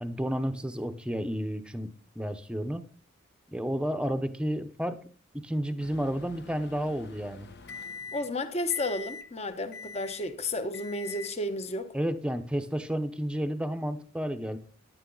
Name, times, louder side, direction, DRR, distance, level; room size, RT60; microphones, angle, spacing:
voice 1, 0.0-2.8 3.5-5.0 5.3-7.5 11.9-14.6, equal, 5° right, 0.9 m, -31 dB
Microwave oven, 5.8-8.4 8.7-9.3 9.7-10.3 10.7-11.4, left 4 dB, 55° left, 1.1 m, -44 dB
voice 2, 8.1-11.9, left 2 dB, 30° left, 1.1 m, -32 dB
14.5 x 11.0 x 4.0 m
head